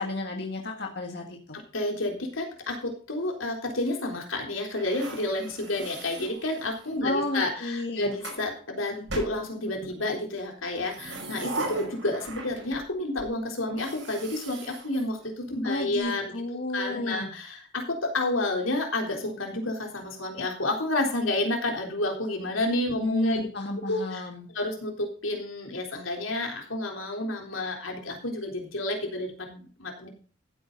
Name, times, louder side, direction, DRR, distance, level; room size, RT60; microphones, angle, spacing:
voice 1, 0.0-1.6 7.0-8.1 15.6-17.3 23.0-24.5, left 1 dB, 55° left, 2 dB, 1.8 m, -31 dB
voice 2, 1.5-16.3 16.7-23.5 23.9-24.2 24.5-30.1, left 2 dB, 90° left, 2 dB, 3.8 m, -30 dB
sound 1, 4.8-7.0 7.8-8.4 9.1-10.0 10.7-12.9 13.2-13.3 13.7-15.7, right 2 dB, 70° right, 5.4 m, -39 dB
15.0 x 8.8 x 4.0 m, 0.39 s
head